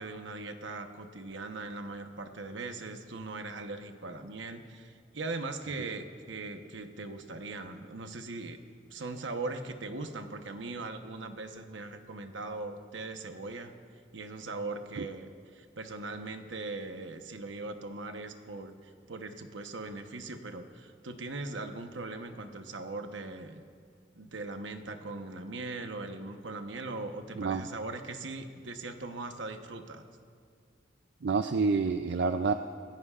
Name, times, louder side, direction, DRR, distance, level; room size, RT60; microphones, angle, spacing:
voice 1, 0.0-8.6 8.9-13.7 14.1-23.6 24.1-30.0, right 3 dB, 85° right, 6 dB, 1.0 m, -40 dB
voice 2, 31.2-32.5, right 4 dB, 65° right, 8 dB, 0.4 m, -28 dB
26.5 x 16.5 x 2.5 m, 2.2 s
head